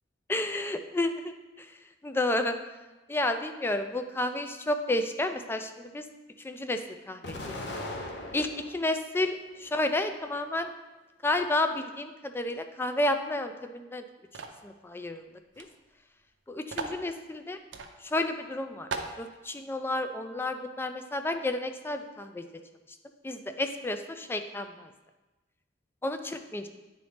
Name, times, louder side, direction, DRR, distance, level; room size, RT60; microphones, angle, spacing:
voice 1, 0.3-1.3 1.6-1.7 2.0-2.6 3.1-6.1 6.4-7.6 8.3-10.7 11.2-14.0 14.6-15.2 15.6-15.7 16.5-17.6 18.0-18.9 19.2-22.4 23.2-24.9 26.0-26.7, left 2 dB, 10° left, 7 dB, 0.3 m, -31 dB
Explosion, 7.2-8.9 9.4-10.3, left 1 dB, 60° left, 0.8 m, -39 dB
sound 1, 14.3-14.6 15.5-15.7 15.9-16.0 16.7-17.0 17.7-17.9 18.4-18.5 18.9-19.2, right 4 dB, 70° right, 0.6 m, -36 dB
9.3 x 3.9 x 3.4 m, 1.1 s
head